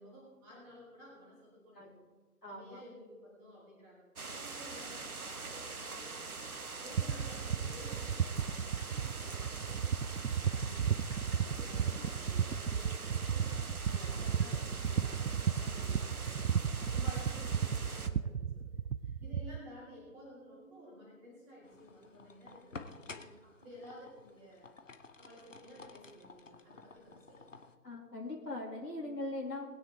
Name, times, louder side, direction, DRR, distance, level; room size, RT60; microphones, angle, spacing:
voice 1, 0.0-2.0 2.5-10.8 11.2-13.5 13.8-16.5 16.9-24.7 25.2-27.6, equal, 10° right, -7 dB, 2.6 m, -53 dB
voice 2, 2.4-2.8 9.4-9.5 27.8-29.7, left 2 dB, 75° left, -4 dB, 2.8 m, -41 dB
sound 1, 4.2-18.1, right 3 dB, 60° right, 1.3 m, -44 dB
sound 2, 6.9-19.6, right 7 dB, 85° right, 0.6 m, -34 dB
sound 3, 21.6-27.7, left 4 dB, 50° left, 1.1 m, -52 dB
20.5 x 9.6 x 3.5 m, 1.3 s
figure-of-eight pair, 150°, 49 cm